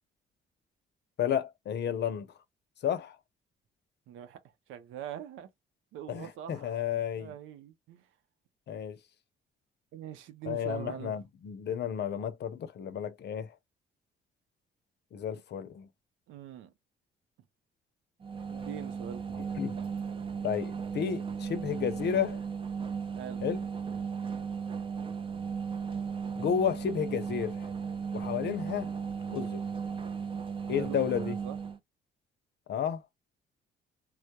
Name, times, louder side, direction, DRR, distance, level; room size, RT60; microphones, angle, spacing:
voice 1, 1.2-2.3 2.8-3.2 6.1-7.3 8.7-9.0 10.5-13.6 15.1-15.9 19.6-19.8 20.4-22.4 23.4-23.6 26.4-27.7 28.1-28.9 29.3-29.6 30.7-31.3 32.7-33.0, left 8 dB, 60° left, 0.6 m, -32 dB
voice 2, 4.1-4.4 4.7-5.5 5.9-6.8 7.2-8.1 9.9-11.1 16.3-16.7 18.5-19.4 23.1-23.5 30.7-31.6, right 10 dB, 90° right, 0.5 m, -43 dB
sound 1, 18.2-31.8, right 6 dB, 25° right, 0.4 m, -36 dB
2.2 x 2.0 x 2.8 m
cardioid pair, 90°, 20 cm